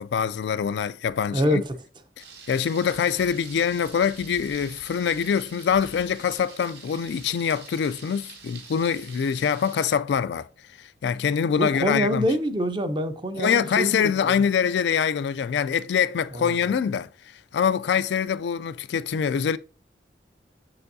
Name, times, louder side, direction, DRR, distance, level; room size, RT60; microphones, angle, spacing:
voice 1, 0.0-1.6 2.5-10.5 10.8-12.3 13.4-17.1 17.5-19.6, left 7 dB, 70° left, 0.3 m, -24 dB
Thunder, 2.2-10.0, right 5 dB, 60° right, 1.4 m, -46 dB
voice 2, 11.6-14.3 16.3-16.6, equal, 25° right, 0.5 m, -25 dB
6.8 x 6.0 x 2.6 m
head